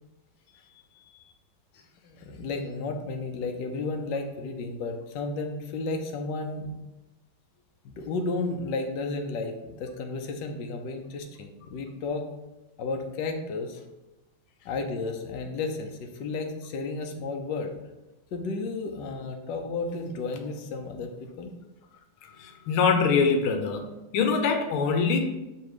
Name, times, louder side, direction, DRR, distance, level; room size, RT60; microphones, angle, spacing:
voice 1, 2.0-6.7 7.8-12.3 12.8-13.8 14.6-17.7 18.3-21.5, left 3 dB, 65° left, 4 dB, 1.3 m, -33 dB
voice 2, 22.4-23.9 24.1-25.2, left 5 dB, 90° left, 5 dB, 1.6 m, -23 dB
6.5 x 3.4 x 4.8 m, 1.0 s
omnidirectional pair, 2.3 m